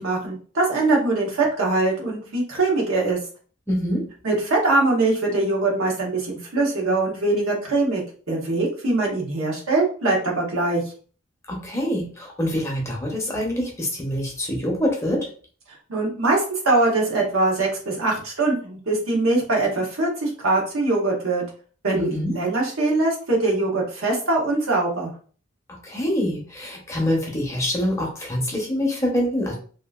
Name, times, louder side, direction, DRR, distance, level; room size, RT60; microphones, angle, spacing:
voice 1, 0.0-3.2 4.2-8.0 8.3-10.8 15.9-21.4 21.8-25.1, right 2 dB, 85° right, -2 dB, 1.0 m, -22 dB
voice 2, 3.7-4.1 11.5-15.3 21.9-22.3 25.8-29.5, equal, 15° left, -1 dB, 0.6 m, -25 dB
2.7 x 2.4 x 2.3 m, 0.41 s
head